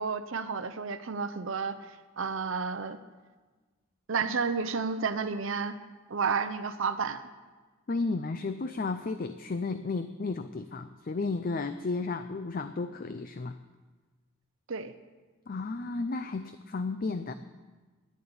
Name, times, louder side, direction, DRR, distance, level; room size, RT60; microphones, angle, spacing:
voice 1, 0.0-3.0 4.1-5.8 6.1-7.3 14.7-14.9, right 5 dB, 65° right, 10 dB, 0.6 m, -31 dB
voice 2, 7.9-13.6 15.5-17.3, left 3 dB, 40° left, 10 dB, 0.4 m, -33 dB
10.5 x 10.5 x 8.7 m, 1.3 s
head